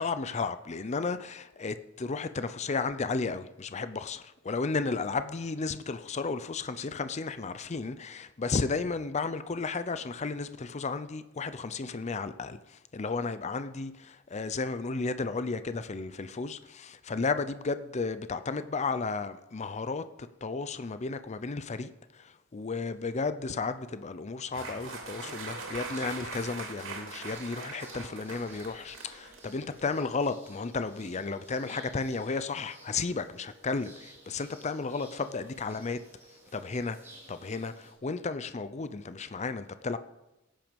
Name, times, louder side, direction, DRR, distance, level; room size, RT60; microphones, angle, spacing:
voice 1, 0.0-20.0 20.4-36.0 36.5-37.0 37.3-40.0, left 4 dB, 35° left, 0.5 m, -33 dB
sound 1, 24.5-30.1, right 3 dB, 65° right, 3.0 m, -41 dB
sound 2, 25.6-37.9, right 1 dB, 15° right, 4.8 m, -55 dB
17.5 x 9.0 x 5.2 m
head